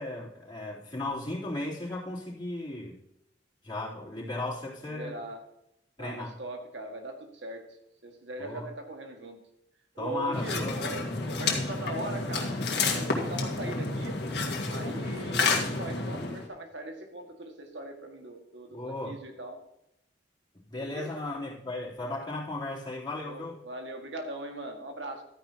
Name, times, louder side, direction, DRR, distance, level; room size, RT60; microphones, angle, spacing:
voice 1, 0.0-3.0 3.6-5.2 6.0-6.3 8.4-8.7 10.0-10.8 18.7-19.2 20.7-23.6, left 2 dB, 25° left, -7 dB, 3.7 m, -36 dB
voice 2, 4.9-5.4 6.0-7.7 8.0-9.4 9.9-14.2 14.7-19.6 20.8-21.1 23.2-25.2, right 1 dB, 85° right, 3 dB, 2.0 m, -40 dB
sound 1, 10.3-16.5, left 3 dB, 65° left, 2.0 m, -30 dB
13.0 x 9.9 x 3.0 m, 0.81 s
head